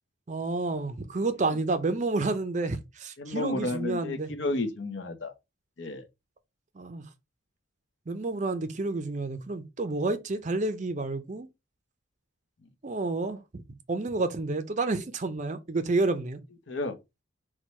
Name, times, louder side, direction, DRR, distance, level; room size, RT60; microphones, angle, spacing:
voice 1, 0.3-4.3 6.8-7.0 8.1-11.5 12.8-13.6 13.9-16.4, right 3 dB, 35° right, 0.5 m, -30 dB
voice 2, 3.2-5.3 5.8-6.0 16.7-17.0, left 2 dB, 65° left, 0.8 m, -32 dB
4.5 x 2.2 x 4.2 m
head